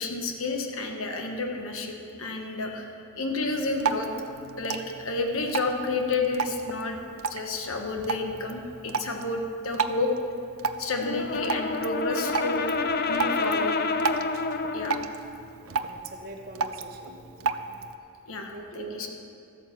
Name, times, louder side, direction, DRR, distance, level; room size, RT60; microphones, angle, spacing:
voice 1, 0.0-2.9 3.2-4.1 4.6-7.0 7.3-10.1 10.8-12.7 13.1-13.8 14.7-15.0 18.3-19.1, left 3 dB, 65° left, 3 dB, 1.2 m, -30 dB
Drip, 3.5-18.0, right 5 dB, 70° right, 0.6 m, -34 dB
Brass instrument, 11.0-15.2, left 3 dB, 45° left, 0.6 m, -28 dB
voice 2, 15.6-17.5 18.5-19.0, right 2 dB, 45° right, 1 dB, 1.2 m, -43 dB
14.0 x 8.9 x 7.2 m, 2.6 s
head